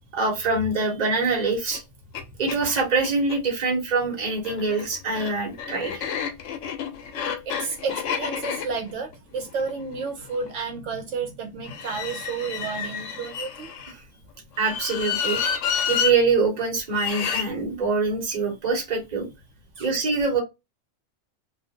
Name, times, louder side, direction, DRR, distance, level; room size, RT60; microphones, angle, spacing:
voice 1, 0.1-1.8 2.4-6.1 14.6-15.6 15.9-19.3 19.8-20.4, right 4 dB, 40° right, 0.9 m, -24 dB
sound 1, 1.7-1.8 2.1-2.2 2.5-3.4 4.3-10.5 11.6-13.9 14.6-16.1 16.9-17.5, left 7 dB, 80° left, 0.9 m, -30 dB
voice 2, 7.2-13.7 19.8-19.9, right 5 dB, 75° right, 1.0 m, -31 dB
2.4 x 2.2 x 2.7 m
omnidirectional pair, 1.3 m